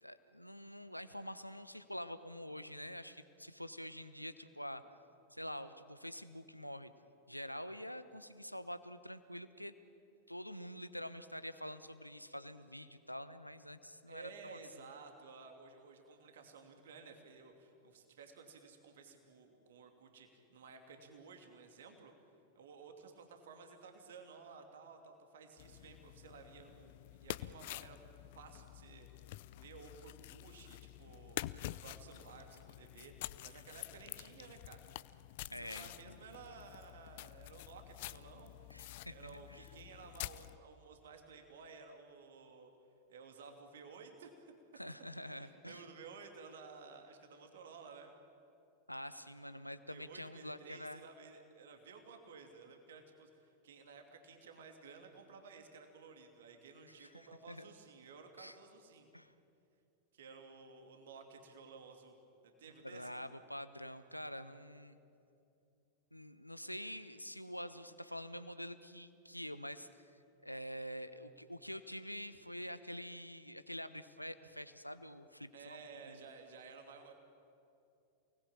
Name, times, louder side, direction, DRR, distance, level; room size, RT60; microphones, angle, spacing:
voice 1, 0.0-4.8 5.3-6.9 7.3-9.7 10.3-14.6 35.5-36.2 38.7-39.7 44.7-45.8 48.9-51.0 57.0-57.7 58.4-58.6 59.1-59.3 62.8-65.0 66.1-70.1 70.4-75.8 76.1-76.2, equal, 90° left, 12 dB, 1.1 m, -46 dB
voice 2, 14.1-22.1 22.5-28.0 28.3-29.1 29.6-31.4 31.7-34.8 35.5-38.5 39.1-42.7 43.1-44.5 45.4-48.1 49.9-59.1 60.1-62.2 62.4-63.1 75.5-77.1, right 5 dB, 60° right, 5 dB, 2.8 m, -55 dB
sound 1, 25.6-40.6, left 16 dB, 50° left, 0.6 m, -48 dB
28.5 x 20.0 x 8.9 m, 2.7 s
figure-of-eight pair, 90°, 0 cm